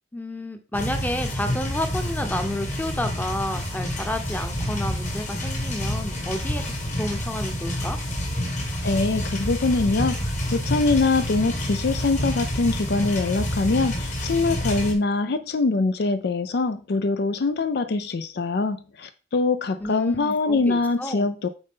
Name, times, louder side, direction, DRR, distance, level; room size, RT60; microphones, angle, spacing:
voice 1, 0.1-8.0 19.8-21.3, left 1 dB, 10° left, 0.8 m, -30 dB
sound 1, 0.7-14.9, equal, 40° left, 1.9 m, -28 dB
voice 2, 8.8-21.5, left 3 dB, 60° left, 0.4 m, -23 dB
7.9 x 3.9 x 3.7 m
head